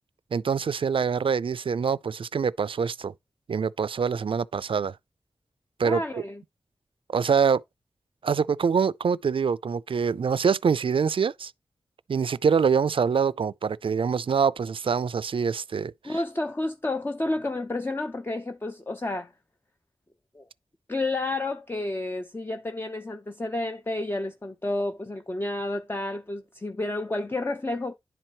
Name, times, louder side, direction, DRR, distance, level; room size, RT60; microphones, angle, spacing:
voice 1, 0.3-3.1 3.5-5.0 5.8-6.2 7.1-7.6 8.2-11.5 12.1-16.2, right 6 dB, 65° right, 0.4 m, -25 dB
voice 2, 5.8-6.4 16.0-19.3 20.3-20.4 20.9-27.9, left 2 dB, 25° left, 0.6 m, -30 dB
10.5 x 4.5 x 2.9 m
wide cardioid pair, 60°, 10 cm